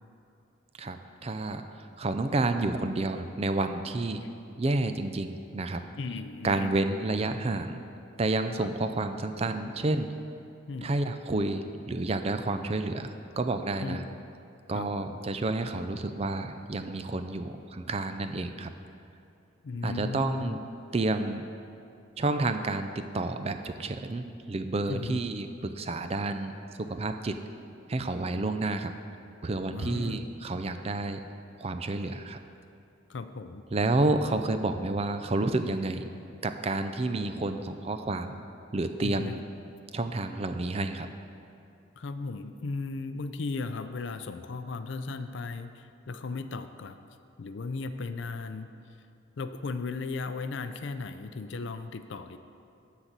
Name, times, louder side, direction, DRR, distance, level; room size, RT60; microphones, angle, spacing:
voice 1, 1.2-1.6 2.0-4.2 4.6-5.8 6.4-7.8 8.2-10.1 10.8-14.0 14.7-18.7 19.8-20.6 20.9-21.4 22.2-26.5 26.8-27.4 27.9-28.9 29.4-31.2 31.6-32.4 33.7-36.1 36.4-38.4 38.7-39.4 39.9-41.1, right 2 dB, 30° right, 8 dB, 0.4 m, -30 dB
voice 2, 6.0-6.7 8.6-8.7 10.7-10.9 13.8-14.1 14.7-15.2 19.6-20.6 24.9-25.2 29.7-30.3 33.1-33.6 39.0-39.4 42.0-47.0 47.4-48.7 49.4-52.4, left 3 dB, 65° left, 10 dB, 0.5 m, -36 dB
12.0 x 4.1 x 8.0 m, 2.6 s
head